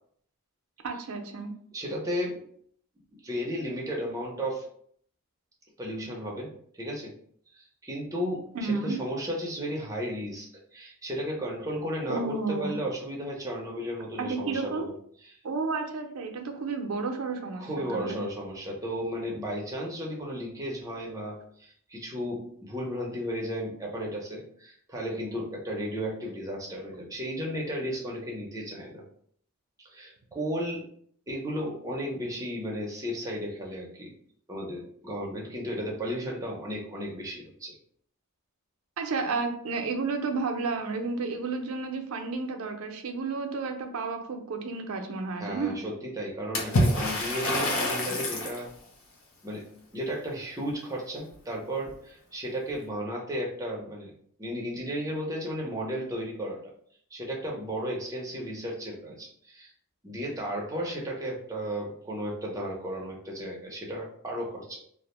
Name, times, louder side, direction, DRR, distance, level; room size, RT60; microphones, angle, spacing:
voice 1, 0.8-1.5 8.5-9.0 12.1-12.7 14.2-14.9 15.4-18.2 39.0-45.8, right 4 dB, 75° right, 4 dB, 0.5 m, -31 dB
voice 2, 1.7-2.4 3.2-4.7 5.8-7.1 7.5-14.9 15.2-15.4 17.6-29.0 29.8-30.8 31.3-34.1 34.5-37.8 45.4-48.7 49.4-49.7 49.9-54.1 54.4-56.7 57.1-59.7 60.0-64.8, equal, 15° right, -2 dB, 0.5 m, -34 dB
Water / Splash splatter, 46.5-48.6, left 1 dB, 65° left, 0.6 m, -26 dB
2.4 x 2.0 x 2.9 m, 0.62 s
head